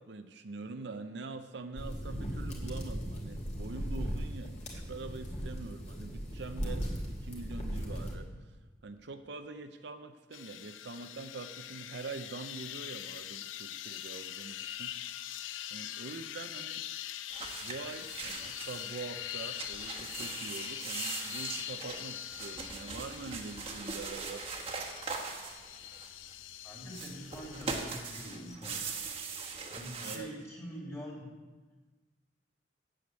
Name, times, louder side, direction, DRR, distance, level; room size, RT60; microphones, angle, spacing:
voice 1, 0.0-8.6 8.8-14.9 15.7-16.9 17.6-24.4 30.0-30.3, right 3 dB, 65° right, 8 dB, 0.6 m, -44 dB
sound 1, 1.7-8.1, equal, 35° left, 2.3 m, -37 dB
sound 2, 10.3-28.5, left 11 dB, 90° left, 0.5 m, -43 dB
sound 3, 17.3-19.0 19.3-26.3 26.9-30.2, right 4 dB, 30° right, 1.2 m, -41 dB
voice 2, 26.6-29.0 29.7-31.3, equal, 15° left, -4 dB, 3.0 m, -44 dB
8.4 x 7.8 x 8.0 m, 1.3 s
head